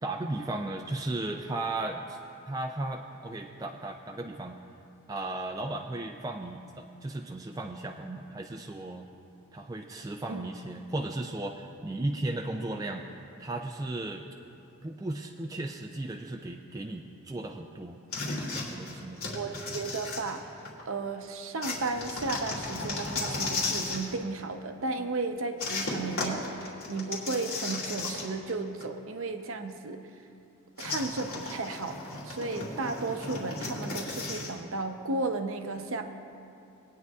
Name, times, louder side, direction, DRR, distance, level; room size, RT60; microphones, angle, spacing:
voice 1, 0.0-2.2 2.5-4.6 5.1-9.1 9.5-14.2 14.8-18.0 18.5-19.2, right 2 dB, 15° right, 2 dB, 0.3 m, -35 dB
sound 1, 18.1-20.8 21.6-24.1 25.6-28.5 28.8-28.9 30.8-34.5, left 3 dB, 85° left, 2.5 m, -35 dB
voice 2, 19.3-20.5 20.9-30.0 30.8-36.1, right 3 dB, 65° right, 6 dB, 0.7 m, -34 dB
21.5 x 9.3 x 2.4 m, 2.6 s
head